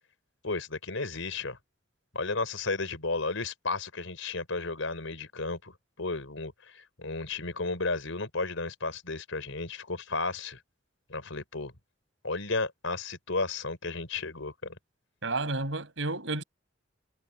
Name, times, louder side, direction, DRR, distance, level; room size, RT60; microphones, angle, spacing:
voice 1, 0.4-1.6 2.1-10.6 11.1-11.7 12.2-14.8, left 3 dB, 85° left, 4.3 m, -33 dB
voice 2, 15.2-16.4, right 2 dB, 75° right, 5.9 m, -31 dB
head